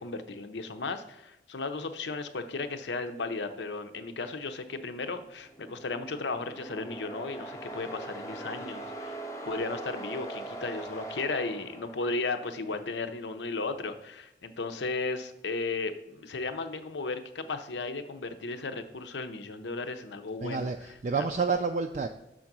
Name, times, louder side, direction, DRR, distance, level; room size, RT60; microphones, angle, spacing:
voice 1, 0.0-9.2 9.4-21.3, left 3 dB, 85° left, 9 dB, 0.6 m, -35 dB
sound 1, 5.4-12.4, right 2 dB, 20° left, 0.7 m, -41 dB
voice 2, 20.4-22.1, right 4 dB, 45° right, 5 dB, 0.3 m, -29 dB
6.3 x 3.8 x 6.0 m, 0.94 s
head